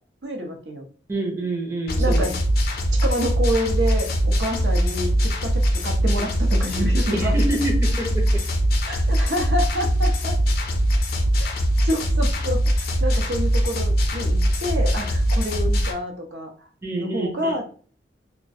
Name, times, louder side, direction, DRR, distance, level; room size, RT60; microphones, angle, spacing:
voice 1, 0.2-0.8 2.0-2.3 2.9-7.3 8.9-10.3 11.4-11.5 11.8-12.6 13.0-16.5 17.0-17.7, equal, 75° right, 2 dB, 0.6 m, -28 dB
voice 2, 1.1-2.3 7.1-8.4 16.8-17.5, right 1 dB, 15° right, -1 dB, 0.5 m, -27 dB
sound 1, 1.9-15.9, equal, 60° left, 0.4 m, -21 dB
2.3 x 2.1 x 2.6 m, 0.41 s
head